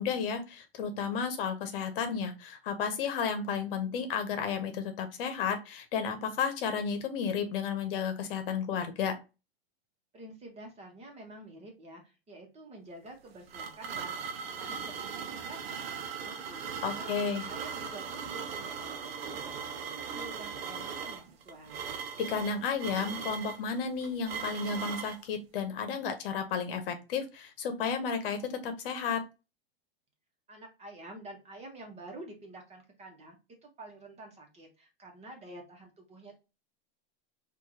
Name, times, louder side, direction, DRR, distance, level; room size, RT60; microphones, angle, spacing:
voice 1, 0.0-9.2 16.8-17.5 22.2-29.2, left 6 dB, 65° left, 7 dB, 1.0 m, -32 dB
voice 2, 10.1-14.2 14.6-15.6 15.9-16.7 17.0-21.9 30.5-33.4 33.6-36.4, right 2 dB, 20° right, 2 dB, 1.3 m, -49 dB
sound 1, 13.1-25.2, right 6 dB, 75° right, 0.7 m, -39 dB
4.6 x 2.6 x 2.8 m, 0.28 s
hypercardioid pair, 120°, 30 cm